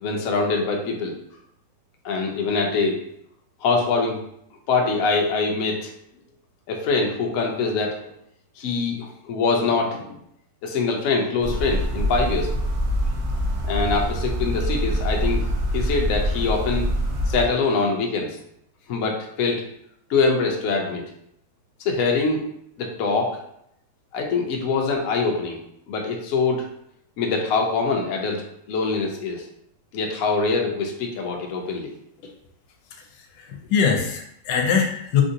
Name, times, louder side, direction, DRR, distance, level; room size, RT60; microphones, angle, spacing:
voice 1, 0.0-1.1 2.0-3.0 3.6-4.2 4.7-5.9 6.7-8.1 8.6-10.2 10.6-12.5 13.6-15.4 15.7-16.9 17.3-18.4 18.9-19.6 20.1-21.1 21.8-22.4 22.8-23.4 24.1-25.6 25.9-26.7 27.2-29.5 29.9-31.9, left 4 dB, 70° left, 1 dB, 0.9 m, -24 dB
sound 1, 11.4-17.5, equal, 65° right, 0.9 m, -24 dB
voice 2, 33.4-35.2, left 6 dB, 85° left, 3 dB, 1.2 m, -22 dB
3.6 x 2.5 x 2.6 m, 0.73 s
omnidirectional pair, 1.9 m